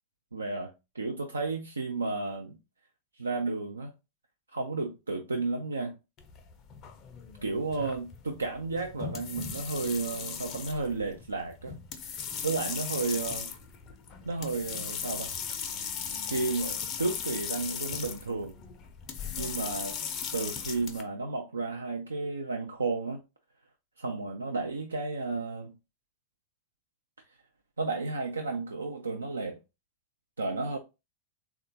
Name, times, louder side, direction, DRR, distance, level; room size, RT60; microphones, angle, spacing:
voice 1, 0.3-2.6 3.2-3.9 4.5-6.0 7.4-11.8 12.4-13.5 14.2-15.3 16.2-18.5 19.4-20.0 20.3-23.2 24.0-25.7 27.8-29.6 30.4-30.8, right 3 dB, 75° right, 0.4 m, -32 dB
sound 1, 6.2-21.0, left 7 dB, 35° left, 0.5 m, -38 dB
3.4 x 2.3 x 2.7 m
figure-of-eight pair, 90°, 0 cm